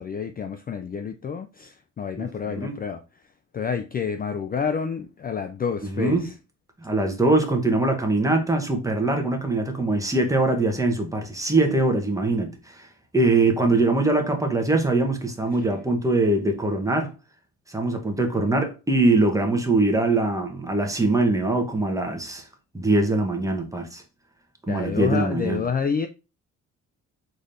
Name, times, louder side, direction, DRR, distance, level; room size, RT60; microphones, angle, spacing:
voice 1, 0.0-3.0 3.5-6.3 24.7-26.1, left 6 dB, 30° left, 0.4 m, -28 dB
voice 2, 2.2-2.8 5.8-6.3 6.8-12.9 13.1-17.1 17.7-22.4 22.7-24.0 24.7-25.6, right 2 dB, 10° right, 1.0 m, -22 dB
4.0 x 3.3 x 2.6 m
cardioid pair, 90°, 30 cm